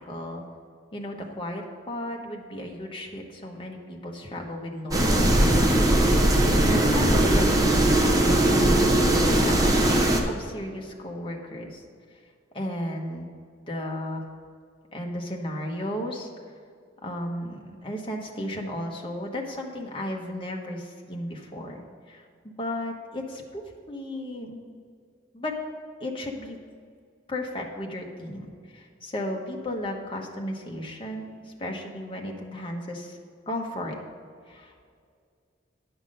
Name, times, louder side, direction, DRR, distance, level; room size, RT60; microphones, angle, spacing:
voice 1, 0.1-0.4 0.9-5.5 6.6-11.8 12.5-13.3 13.7-14.2 14.9-16.3 17.0-24.6 25.3-25.5 26.0-26.6 27.3-33.2 33.5-33.9 34.5-34.8, left 1 dB, 25° left, 0 dB, 1.1 m, -35 dB
sound 1, 4.9-10.2, right 1 dB, 20° right, 0.8 m, -20 dB
9.7 x 5.9 x 5.4 m, 2.2 s
head